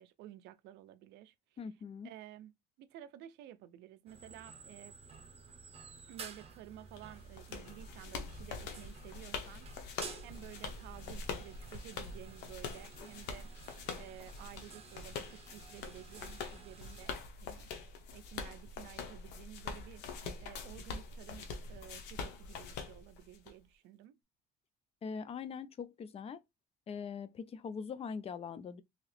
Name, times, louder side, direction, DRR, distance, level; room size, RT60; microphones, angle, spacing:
voice 1, 0.0-1.3 2.0-5.0 6.1-9.7 10.2-17.7 18.1-20.0 20.4-24.2, right 13 dB, 85° right, 0.5 m, -53 dB
voice 2, 1.6-2.1 25.0-26.4 26.9-28.8, left 6 dB, 35° left, 0.4 m, -42 dB
sound 1, 4.1-17.1, right 5 dB, 35° right, 0.8 m, -53 dB
sound 2, 7.0-23.5, left 5 dB, 85° left, 0.7 m, -44 dB
2.9 x 2.8 x 3.2 m
cardioid pair, 110°, 17 cm